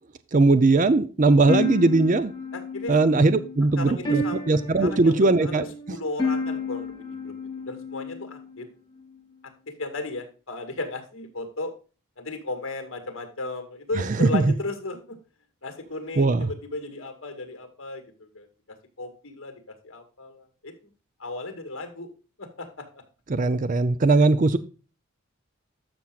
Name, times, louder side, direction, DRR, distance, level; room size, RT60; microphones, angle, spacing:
voice 1, 0.3-2.3 2.9-5.7 14.0-14.4 16.2-16.5 23.3-24.6, right 3 dB, 35° right, 13 dB, 0.5 m, -20 dB
sound 1, 1.5-8.6, left 2 dB, 20° left, 2.3 m, -31 dB
voice 2, 2.5-2.9 3.8-4.4 4.8-5.6 5.9-7.3 7.7-8.7 9.8-11.7 12.2-15.2 15.6-18.5 19.0-20.7 21.2-22.1 22.4-22.7 22.9-23.0 24.1-24.2, left 2 dB, 65° left, 5 dB, 2.0 m, -35 dB
13.0 x 6.1 x 2.4 m, 0.34 s
head